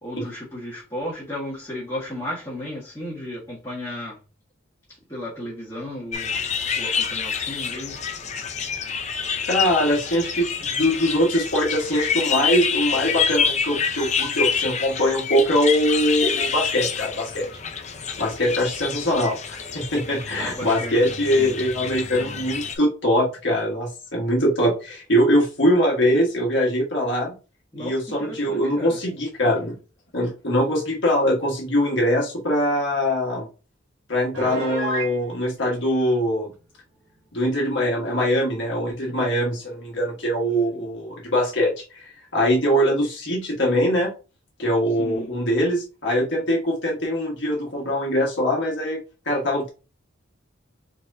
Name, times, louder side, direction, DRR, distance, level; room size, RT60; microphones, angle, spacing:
voice 1, 0.0-4.2 4.9-6.4 6.8-8.0 20.4-21.0 21.3-21.6 27.7-29.0 40.7-40.8 45.0-45.3, left 1 dB, 20° left, 1.7 m, -34 dB
sound 1, 6.1-22.7, left 6 dB, 35° left, 0.5 m, -27 dB
voice 2, 9.5-17.5 18.2-27.3 27.8-29.8 30.1-33.5 34.1-36.5 37.3-44.1 44.6-49.7, equal, 60° left, 1.5 m, -22 dB
Piano, 34.3-35.2, right 1 dB, 80° right, 1.8 m, -28 dB
4.2 x 4.1 x 2.7 m
head